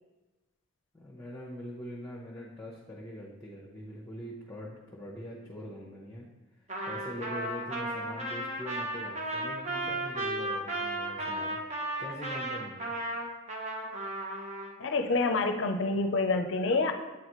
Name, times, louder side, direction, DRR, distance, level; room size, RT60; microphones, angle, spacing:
voice 1, 0.9-6.3 6.9-12.9, equal, 10° left, -5 dB, 0.8 m, -43 dB
Trumpet, 6.7-14.7, right 1 dB, 35° right, 0.9 m, -34 dB
voice 2, 14.8-16.9, left 3 dB, 60° left, 6 dB, 0.5 m, -27 dB
8.4 x 4.0 x 3.1 m, 1.1 s
head